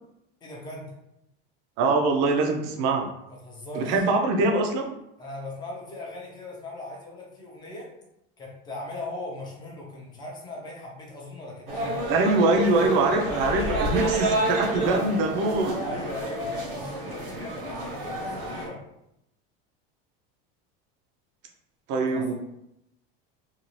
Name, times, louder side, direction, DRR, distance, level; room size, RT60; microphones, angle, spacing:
voice 1, 0.4-0.9 3.4-4.1 5.2-7.9 8.4-12.0 13.7-14.2 15.8-18.8 22.0-22.3, left 2 dB, 15° left, -2 dB, 0.5 m, -39 dB
voice 2, 1.8-3.1 3.7-4.9 12.1-15.8 21.9-22.3, right 3 dB, 40° right, 3 dB, 0.4 m, -23 dB
sound 1, 11.7-18.7, right 1 dB, 75° right, 0.9 m, -29 dB
2.6 x 2.3 x 3.0 m, 0.82 s
supercardioid pair, 165°, 29 cm